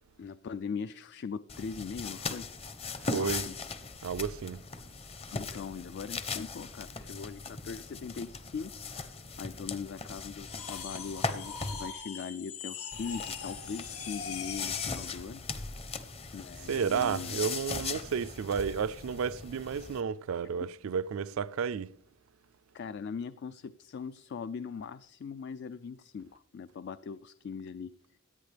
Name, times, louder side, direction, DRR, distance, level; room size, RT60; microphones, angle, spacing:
voice 1, 0.2-2.5 3.1-3.6 5.3-9.1 9.4-16.0 16.3-17.4 20.6-20.7 22.7-27.9, left 6 dB, 50° left, 0.3 m, -40 dB
sound 1, 1.5-11.9 12.9-20.0, left 4 dB, 25° left, 0.7 m, -39 dB
voice 2, 3.0-3.5 4.0-4.6 16.7-22.0, right 6 dB, 65° right, 0.4 m, -32 dB
sound 2, 10.4-15.2, left 6 dB, 85° left, 2.0 m, -41 dB
17.0 x 10.5 x 3.4 m
head